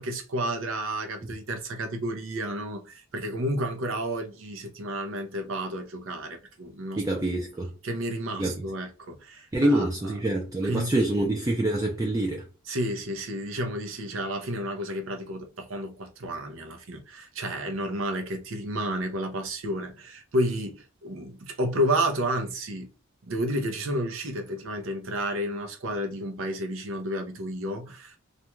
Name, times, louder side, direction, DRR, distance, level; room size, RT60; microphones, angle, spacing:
voice 1, 0.0-7.1 7.8-9.9 10.6-11.3 12.7-22.9 23.3-28.2, right 1 dB, 70° right, 0.6 m, -31 dB
voice 2, 7.0-7.7 8.4-8.5 9.5-12.5, right 1 dB, 15° right, 0.3 m, -26 dB
2.5 x 2.2 x 2.9 m
head